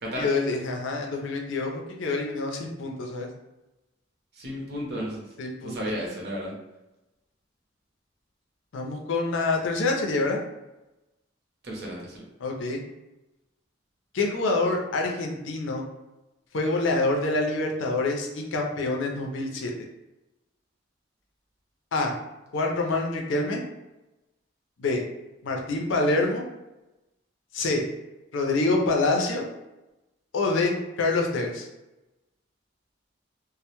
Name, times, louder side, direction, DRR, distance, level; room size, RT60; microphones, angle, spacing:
voice 1, 0.2-3.3 5.4-5.8 8.7-10.4 12.4-12.8 14.1-15.8 16.5-19.7 21.9-22.1 22.5-23.6 24.8-25.0 25.4-26.4 27.5-27.8 28.3-29.5 30.3-31.7, left 3 dB, 80° left, 1 dB, 0.5 m, -26 dB
voice 2, 4.3-5.2 5.6-6.6 11.6-12.2, equal, 55° right, -2 dB, 0.7 m, -33 dB
2.1 x 2.0 x 2.9 m, 1.0 s
head